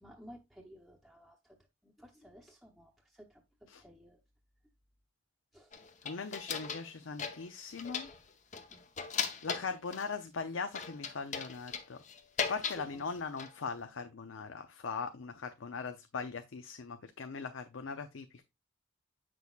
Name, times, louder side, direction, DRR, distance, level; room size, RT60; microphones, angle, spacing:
voice 1, 0.0-1.6 1.8-3.4 3.8-4.2 5.5-5.7 8.7-8.8 12.7-13.1, equal, ahead, 0.9 m, -55 dB
sound 1, 5.7-6.9 7.2-8.2 8.5-10.1 10.7-12.8 13.2-13.7, left 6 dB, 35° left, 0.7 m, -38 dB
voice 2, 6.0-8.1 9.4-12.0 12.5-18.4, left 5 dB, 80° left, 0.6 m, -40 dB
8.3 x 6.2 x 2.4 m
head